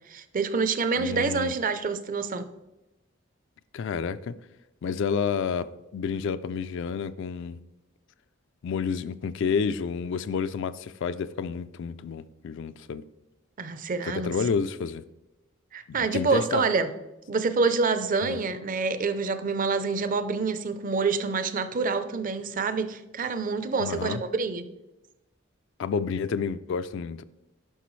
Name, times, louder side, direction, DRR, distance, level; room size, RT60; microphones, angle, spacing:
voice 1, 0.1-2.4 13.6-14.3 15.7-16.9 17.3-24.7, right 4 dB, 40° right, 0.5 m, -27 dB
voice 2, 1.0-1.5 3.7-4.3 4.8-7.6 8.6-13.0 14.0-15.0 15.9-16.6 18.2-18.4 23.8-24.2 25.8-27.2, left 6 dB, 65° left, 0.3 m, -30 dB
10.0 x 6.0 x 3.1 m
head